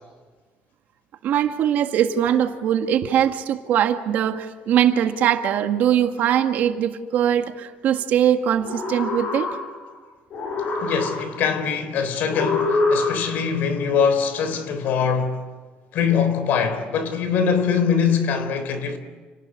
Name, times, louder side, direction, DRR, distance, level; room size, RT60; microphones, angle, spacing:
voice 1, 1.2-9.6, right 10 dB, 55° right, 1.8 m, -21 dB
sound 1, 8.5-10.0 10.3-11.6 12.3-13.6, left 3 dB, 45° left, 6.7 m, -25 dB
voice 2, 10.7-15.4 15.9-19.0, left 6 dB, 65° left, 3.7 m, -23 dB
29.5 x 19.5 x 9.9 m
cardioid pair, 165°, 3 cm